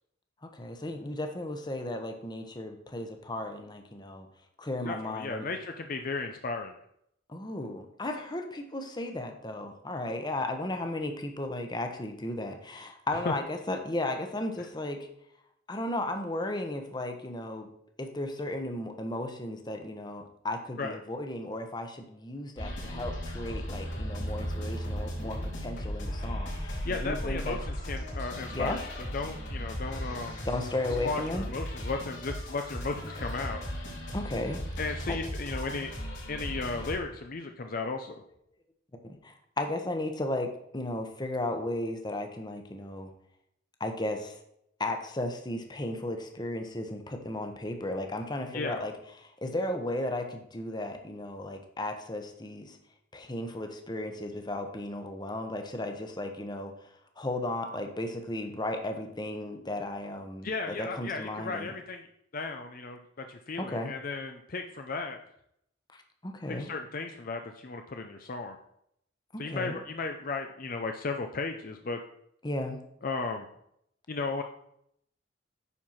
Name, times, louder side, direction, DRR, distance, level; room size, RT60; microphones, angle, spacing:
voice 1, 0.4-4.3 4.6-5.5 7.3-15.0 15.7-17.7 18.0-27.6 28.5-28.8 30.4-31.5 34.1-34.6 35.1-35.2 39.0-43.1 43.8-44.4 44.8-52.8 53.1-56.7 57.2-61.7 63.6-63.9 65.9-66.7 69.3-69.8 72.4-72.8, left 1 dB, 25° left, 5 dB, 1.1 m, -35 dB
voice 2, 4.8-6.7 13.2-13.3 20.8-21.0 26.8-28.9 29.1-30.5 31.0-33.6 34.8-35.9 36.3-38.2 48.5-48.8 60.4-62.1 62.3-65.2 66.5-68.6 69.4-72.0 73.0-73.5 74.1-74.4, left 3 dB, 50° left, 5 dB, 0.6 m, -35 dB
sound 1, 22.6-37.0, equal, 75° left, 4.2 m, -36 dB
9.8 x 4.6 x 5.7 m, 0.74 s
head